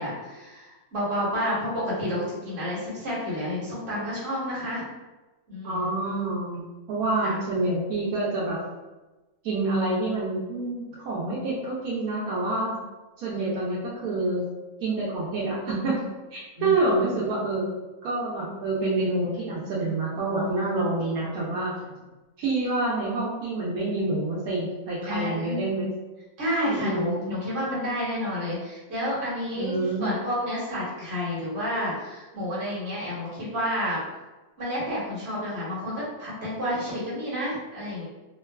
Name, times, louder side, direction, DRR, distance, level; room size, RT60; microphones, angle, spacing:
voice 1, 0.0-4.8 5.5-5.9 7.2-7.4 16.6-17.0 25.0-25.7 26.4-34.0 34.6-38.0, equal, 50° right, -7 dB, 1.2 m, -30 dB
voice 2, 5.6-6.6 6.9-8.6 9.4-12.8 13.2-14.5 14.8-16.0 16.3-17.7 18.0-21.7 22.4-25.9 26.7-27.1 29.6-30.1, right 2 dB, 75° right, -6 dB, 1.1 m, -27 dB
3.0 x 2.2 x 2.2 m, 1.1 s
omnidirectional pair, 1.6 m